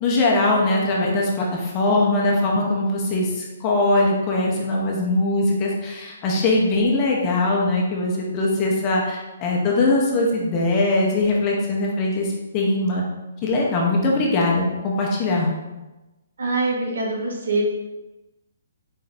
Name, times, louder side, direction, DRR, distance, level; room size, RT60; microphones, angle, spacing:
voice 1, 0.0-12.3 12.5-13.0 13.4-15.5, left 2 dB, 20° left, -2 dB, 0.6 m, -21 dB
voice 2, 16.4-17.6, right 3 dB, 85° right, -1 dB, 1.2 m, -24 dB
4.3 x 2.5 x 4.0 m, 1.1 s
hypercardioid pair, 175°, 0 cm